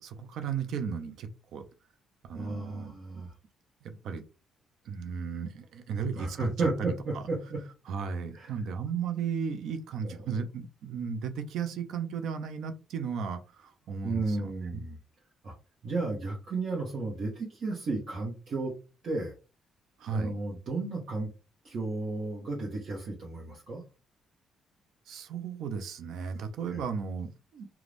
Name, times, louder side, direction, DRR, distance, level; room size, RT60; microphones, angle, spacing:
voice 1, 0.0-1.6 2.2-3.2 3.8-4.2 4.9-6.9 7.9-14.8 20.0-20.3 25.1-27.7, right 6 dB, 75° right, 8 dB, 0.5 m, -35 dB
voice 2, 2.3-3.3 6.2-7.6 8.3-8.5 10.0-10.4 14.0-15.0 15.4-15.5 15.8-18.7 19.0-19.3 20.1-21.3 21.6-23.8 26.7-26.8, right 3 dB, 60° right, -3 dB, 1.0 m, -33 dB
2.5 x 2.3 x 3.3 m, 0.31 s
cardioid pair, 90°, 0 cm